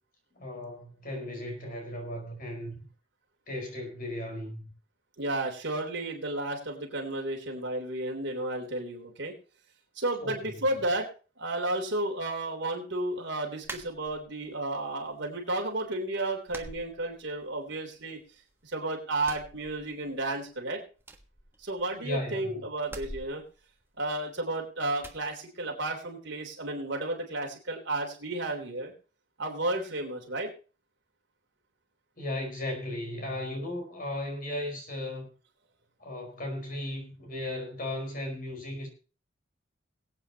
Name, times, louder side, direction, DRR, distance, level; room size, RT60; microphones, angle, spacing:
voice 1, 0.3-2.8 3.5-4.7 10.2-10.6 22.0-22.6 32.2-35.3 36.0-38.9, left 1 dB, 45° left, 2 dB, 4.9 m, -36 dB
voice 2, 5.2-9.3 9.9-11.1 11.4-18.2 18.6-20.8 21.6-23.4 24.0-28.9 29.4-30.5, right 2 dB, 60° right, 2 dB, 3.4 m, -32 dB
sound 1, 13.6-14.5 14.9-15.6 15.9-16.0 16.5-17.6 17.9-18.7 19.1-20.3 20.6-20.7 21.0-22.2 22.8-24.5 25.0-25.3, right 2 dB, 10° right, 1.4 m, -46 dB
22.5 x 8.8 x 2.9 m, 0.35 s
head